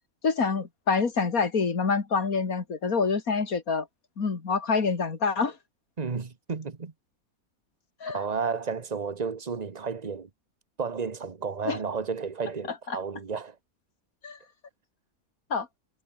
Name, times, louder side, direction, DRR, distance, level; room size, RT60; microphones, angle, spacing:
voice 1, 0.2-3.9 4.2-5.6 8.0-8.2 11.7-11.8 12.9-13.0 14.2-14.4 15.5-15.7, left 5 dB, 85° left, 2.8 m, -26 dB
voice 2, 6.0-6.9 8.1-10.3 10.8-13.6, right 5 dB, 30° right, 1.3 m, -32 dB
omnidirectional pair, 1.5 m